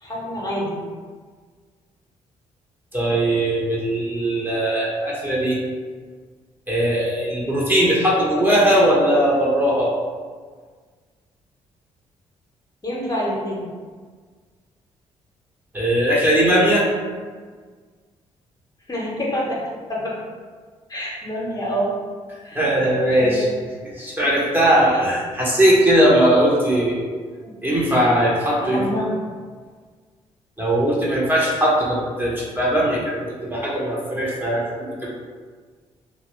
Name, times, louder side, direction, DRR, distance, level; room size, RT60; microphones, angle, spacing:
voice 1, 0.0-0.8 12.8-13.6 18.9-19.6 19.9-20.1 20.9-21.9 22.4-22.6 23.2-23.4 24.9-25.0 27.4-27.5 28.6-29.1, equal, 25° left, -5 dB, 0.8 m, -26 dB
voice 2, 2.9-5.6 6.7-9.9 15.7-16.8 22.5-23.5 23.8-27.0 27.6-28.8 30.6-35.1, right 1 dB, 10° right, -6 dB, 0.8 m, -19 dB
2.8 x 2.1 x 3.0 m, 1.6 s
figure-of-eight pair, 40°, 16 cm